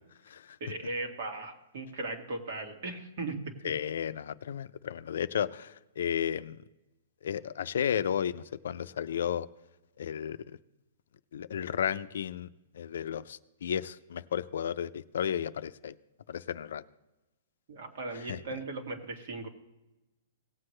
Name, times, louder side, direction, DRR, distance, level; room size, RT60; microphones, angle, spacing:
voice 1, 0.6-3.5 17.7-19.5, right 2 dB, 55° right, 4 dB, 1.9 m, -37 dB
voice 2, 3.6-6.6 7.2-9.5 10.0-10.4 11.3-12.5 12.7-15.9 16.3-16.8 18.1-18.4, left 9 dB, 75° left, 13 dB, 0.4 m, -33 dB
18.0 x 7.8 x 3.3 m, 0.99 s
hypercardioid pair, 155°, 0 cm